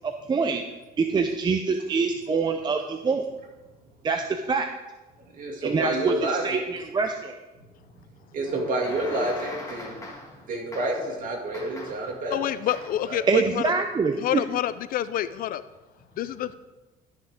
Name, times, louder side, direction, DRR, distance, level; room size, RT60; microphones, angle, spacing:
voice 1, 0.0-0.6 1.0-3.2 4.0-4.7 5.6-6.1 6.4-7.3 13.3-14.4, right 4 dB, 25° right, 5 dB, 0.5 m, -25 dB
voice 2, 5.3-6.6 8.3-9.9 10.5-12.4 13.0-13.2, right 2 dB, 55° right, -1 dB, 2.5 m, -29 dB
sound 1, 8.4-10.4 10.7-11.1 11.5-12.2 12.7-13.1, left 2 dB, 20° left, 1.8 m, -41 dB
voice 3, 12.3-13.7 14.2-15.6 16.2-16.5, left 12 dB, 60° left, 14 dB, 0.4 m, -28 dB
12.5 x 5.9 x 3.6 m, 1.1 s
cardioid pair, 110°, 17 cm